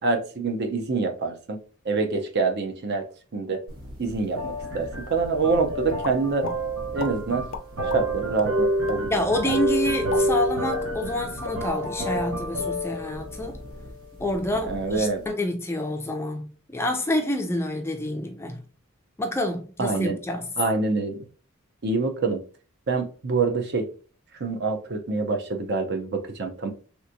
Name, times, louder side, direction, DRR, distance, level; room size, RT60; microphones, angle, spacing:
voice 1, 0.0-1.6 1.8-3.1 3.3-3.6 4.0-6.5 6.9-7.5 7.9-9.2 14.7-15.2 19.8-20.2 20.6-21.2 21.8-22.4 22.9-23.8 24.3-26.7, right 3 dB, 50° right, 0.6 m, -26 dB
sound 1, 3.7-15.3, right 1 dB, 75° right, 1.1 m, -29 dB
sound 2, 6.0-6.6 7.0-7.1 7.5-8.0 8.4-8.5 8.9-9.0 9.4-9.6 9.9-11.2 11.4-11.6 12.0-12.3, left 6 dB, 70° left, 0.4 m, -34 dB
voice 2, 9.1-13.6 14.2-18.6 19.2-20.5, left 1 dB, 10° left, 0.4 m, -28 dB
3.4 x 2.9 x 2.5 m
head